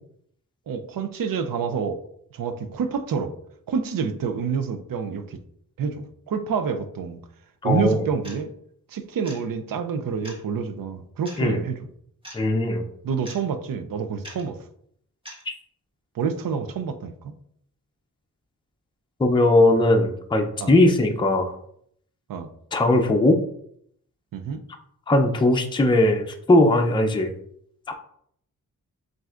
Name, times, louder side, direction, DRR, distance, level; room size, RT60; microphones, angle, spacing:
voice 1, 0.7-2.0 2.3-3.3 3.7-5.4 5.8-7.2 7.6-8.5 8.9-11.8 13.0-14.6 16.1-17.3 20.6-20.8 22.3-22.5 24.3-24.6, right 6 dB, 70° right, 9 dB, 0.6 m, -28 dB
voice 2, 7.6-8.1 11.4-11.6 12.3-12.9 19.2-21.5 22.7-23.4 25.1-27.3 27.9-28.0, left 1 dB, 15° left, 4 dB, 0.5 m, -19 dB
sound 1, 8.2-8.4 9.2-9.4 10.2-10.4 11.3-11.4 12.2-12.4 13.3-13.4 14.2-14.4 15.3-15.4, equal, 15° right, 1.3 m, -41 dB
7.5 x 2.6 x 2.4 m, 0.68 s
wide cardioid pair, 90°, 35 cm